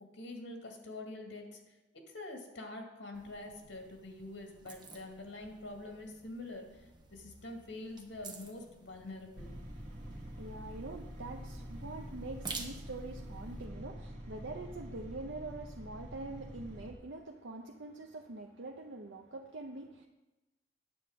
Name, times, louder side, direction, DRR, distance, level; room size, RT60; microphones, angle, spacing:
voice 1, 0.2-9.6, left 2 dB, 85° left, 2 dB, 2.2 m, -46 dB
sound 1, 3.1-13.6, right 3 dB, 25° right, 1.0 m, -51 dB
sound 2, 9.4-16.9, equal, 40° right, 2.2 m, -46 dB
voice 2, 9.9-20.1, right 2 dB, 75° right, 2 dB, 0.7 m, -45 dB
9.6 x 8.0 x 5.1 m, 1.0 s
head